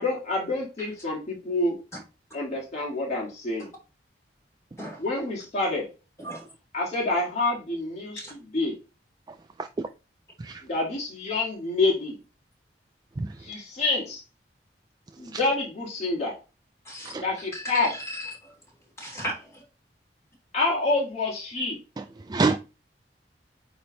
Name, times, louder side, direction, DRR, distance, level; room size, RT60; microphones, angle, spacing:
voice 1, 0.0-1.8 2.3-3.7 5.0-5.9 6.7-8.8 10.6-12.2 13.4-14.2 15.2-16.4 17.2-17.9 20.5-21.8, left 2 dB, 35° left, 2.0 m, -27 dB
voice 2, 9.3-9.9 10.4-10.6 13.2-13.6 15.1-15.4 17.0-17.2 22.0-22.6, right 3 dB, 20° right, 0.3 m, -29 dB
voice 3, 16.8-17.1 17.5-18.5 19.0-19.6, equal, 15° left, 3.1 m, -36 dB
8.7 x 3.4 x 4.0 m
head